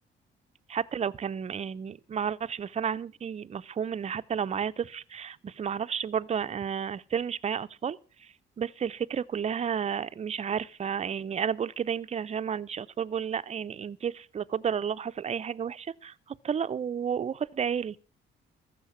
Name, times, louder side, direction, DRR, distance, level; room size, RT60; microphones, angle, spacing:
voice 1, 0.7-8.0 8.6-16.1 16.4-18.0, right 7 dB, 35° right, 0.5 m, -32 dB
14.5 x 6.2 x 7.2 m
cardioid pair, 90°, 20 cm